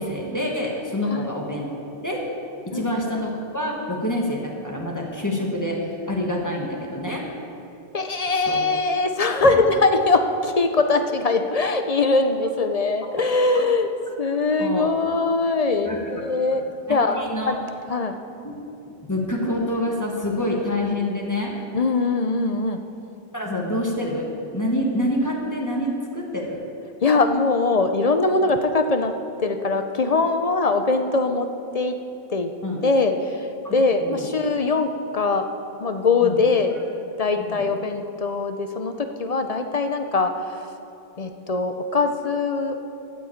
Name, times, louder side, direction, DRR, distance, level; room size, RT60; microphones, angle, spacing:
voice 1, 0.0-1.7 2.0-2.2 2.6-7.2 8.5-8.6 9.4-9.5 13.5-13.7 14.6-14.9 15.8-16.2 16.9-17.5 18.4-18.5 18.8-21.5 23.3-24.3 24.5-26.6 32.6-32.8 33.6-34.3 36.2-36.4 37.4-37.6, left 1 dB, 15° left, -2 dB, 1.5 m, -27 dB
voice 2, 7.9-13.9 14.2-16.6 16.9-17.6 17.9-18.2 21.7-22.8 27.0-29.1 29.4-32.0 32.3-32.5 32.8-35.5 35.8-36.7 37.2-40.7 41.2-42.9, left 3 dB, 45° left, 7 dB, 0.6 m, -22 dB
12.5 x 6.1 x 8.5 m, 2.9 s
omnidirectional pair, 1.1 m